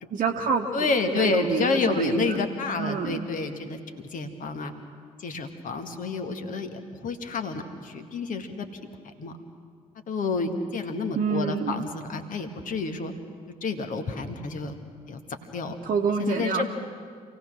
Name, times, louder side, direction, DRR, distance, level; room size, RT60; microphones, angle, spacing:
voice 1, 0.1-2.4 2.8-3.2 11.1-11.9 15.8-16.7, right 5 dB, 45° right, 0 dB, 1.2 m, -27 dB
voice 2, 0.7-4.7 5.2-8.7 9.1-9.4 10.1-13.1 13.6-14.8 15.1-15.2 15.5-15.8 16.2-16.7, left 4 dB, 50° left, 6 dB, 1.8 m, -29 dB
27.5 x 17.5 x 6.2 m, 2.1 s
figure-of-eight pair, 45°, 18 cm